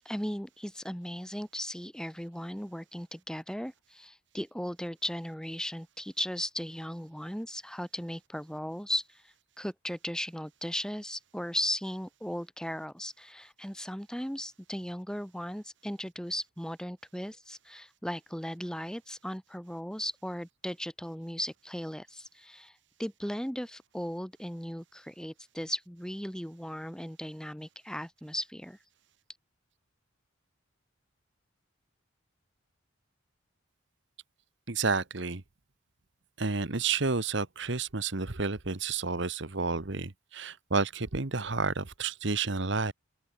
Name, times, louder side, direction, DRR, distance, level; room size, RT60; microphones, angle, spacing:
voice 1, 0.0-28.8, equal, 5° left, 2.6 m, -37 dB
voice 2, 34.7-35.4 36.4-42.9, right 4 dB, 55° right, 1.3 m, -30 dB
open air
head